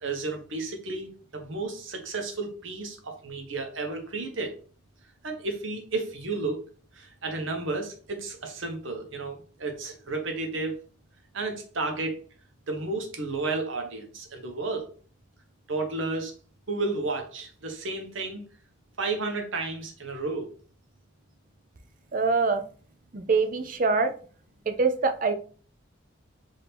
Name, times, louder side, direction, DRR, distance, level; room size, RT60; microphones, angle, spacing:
voice 1, 0.0-4.5 5.2-6.6 6.9-10.8 11.3-12.2 12.7-14.9 15.7-16.3 16.7-18.4 19.0-20.5, right 3 dB, 70° right, 4 dB, 0.9 m, -32 dB
voice 2, 22.1-22.6 23.1-24.1 24.7-25.3, right 4 dB, 40° right, 8 dB, 0.5 m, -24 dB
4.4 x 2.7 x 3.4 m, 0.40 s
head